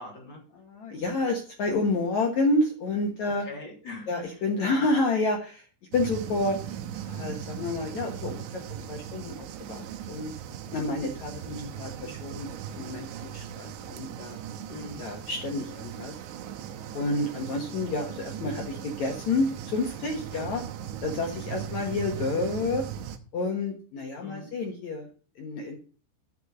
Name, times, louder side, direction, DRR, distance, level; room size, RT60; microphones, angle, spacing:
voice 1, 0.0-0.4 3.4-4.9 11.4-11.7 14.7-15.0 17.1-17.4 20.3-20.6 21.5-21.7 24.2-24.5, left 2 dB, 30° left, -1 dB, 3.6 m, -42 dB
voice 2, 0.6-3.5 4.1-5.6 5.9-6.6 7.0-8.6 8.9-10.3 10.7-11.4 11.8-14.4 15.0-16.1 16.9-20.6 21.0-22.8 23.3-25.1 25.4-25.7, left 2 dB, 65° left, 2 dB, 1.8 m, -29 dB
sound 1, 5.9-23.2, right 9 dB, 85° right, 3.2 m, -38 dB
9.8 x 6.6 x 6.7 m, 0.40 s
omnidirectional pair, 5.2 m